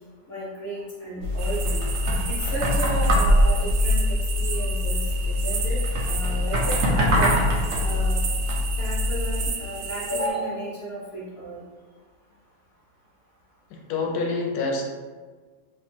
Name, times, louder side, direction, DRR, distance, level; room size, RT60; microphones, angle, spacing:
voice 1, 0.3-1.8 2.3-7.3 7.8-8.2 8.8-11.6, right 1 dB, 50° left, -6 dB, 0.8 m, -33 dB
sound 1, 1.2-9.5, left 1 dB, 60° right, 0.8 m, -23 dB
sound 2, 1.4-10.3, right 6 dB, 75° right, 1.2 m, -33 dB
voice 2, 13.7-14.8, left 3 dB, 70° left, 0 dB, 1.1 m, -27 dB
2.9 x 2.3 x 4.3 m, 1.4 s
omnidirectional pair, 1.9 m